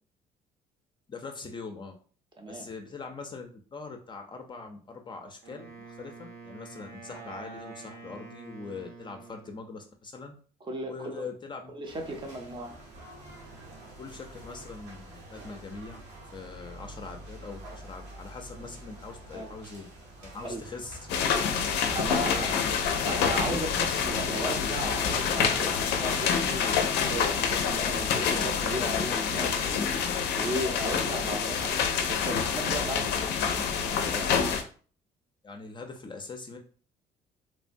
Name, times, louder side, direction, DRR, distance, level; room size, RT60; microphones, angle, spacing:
voice 1, 1.1-1.9 2.5-10.4 10.8-11.7 14.0-16.0 16.3-19.9 20.2-21.0 22.1-22.7 35.4-36.6, left 4 dB, 25° left, 4 dB, 0.4 m, -42 dB
voice 2, 2.4-2.7 10.6-11.2 11.7-12.8 19.3-19.5 20.5-20.6 21.9-22.5 23.0-34.3, right 2 dB, 30° right, 4 dB, 0.6 m, -36 dB
Wind instrument woodwind instrument, 5.4-9.6, right 4 dB, 65° right, 0.8 m, -46 dB
sound 1, 11.8-23.5, right 1 dB, 90° right, 1.1 m, -47 dB
sound 2, 21.1-34.6, left 7 dB, 90° left, 0.4 m, -27 dB
3.1 x 2.1 x 2.6 m, 0.41 s
cardioid pair, 110°, 17 cm